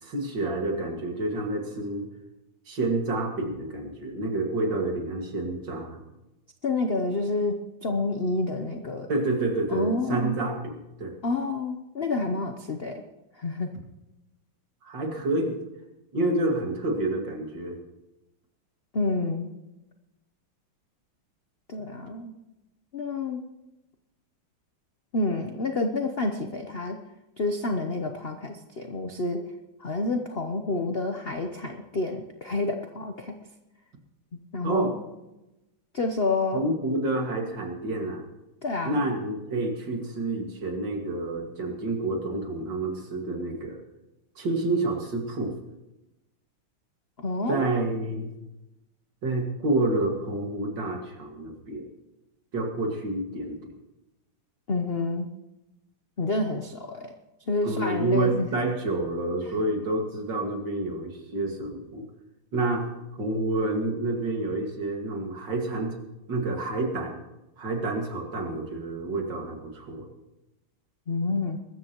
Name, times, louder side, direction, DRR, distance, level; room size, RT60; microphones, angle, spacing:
voice 1, 0.0-2.1 2.7-6.0 9.1-11.1 14.8-15.6 16.1-17.8 34.6-34.9 36.5-38.2 38.8-43.8 44.4-45.5 47.5-48.3 49.2-51.9 52.5-53.7 57.6-62.0 62.5-66.0 66.3-67.1 67.6-70.1, right 2 dB, 60° right, 2 dB, 2.7 m, -28 dB
voice 2, 6.6-9.1 9.7-10.4 11.2-13.0 13.4-13.7 18.9-19.5 21.7-22.3 22.9-23.4 25.1-27.0 27.4-29.4 29.8-33.4 34.5-34.9 35.9-36.6 38.6-39.0 47.2-47.6 54.7-55.3 56.2-57.1 57.5-58.5 71.1-71.6, left 2 dB, 55° left, 5 dB, 0.7 m, -28 dB
22.0 x 13.5 x 3.0 m, 0.97 s
omnidirectional pair, 2.3 m